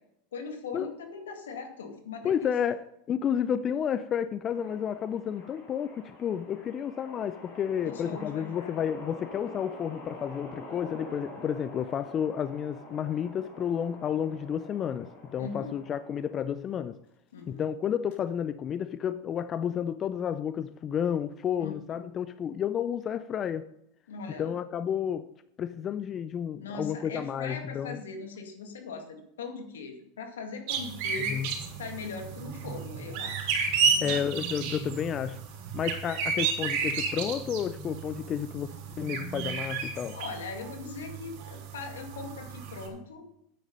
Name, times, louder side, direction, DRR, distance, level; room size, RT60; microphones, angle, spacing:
voice 1, 0.3-2.5 7.9-8.7 15.4-15.8 17.3-17.6 21.6-22.1 24.1-24.6 26.6-31.4 31.8-33.5 33.9-34.2 40.1-43.3, left 4 dB, 85° left, 2.0 m, -40 dB
voice 2, 2.2-17.0 17.5-23.7 24.4-25.3 25.6-28.0 31.3-31.5 34.0-35.4 35.7-40.2, left 8 dB, 35° left, 0.5 m, -31 dB
sound 1, 4.5-16.6 17.4-17.6 18.1-18.2, left 1 dB, 65° left, 3.7 m, -47 dB
sound 2, 30.7-42.9, right 5 dB, 65° right, 3.8 m, -32 dB
9.3 x 9.2 x 5.3 m
hypercardioid pair, 100°, 0 cm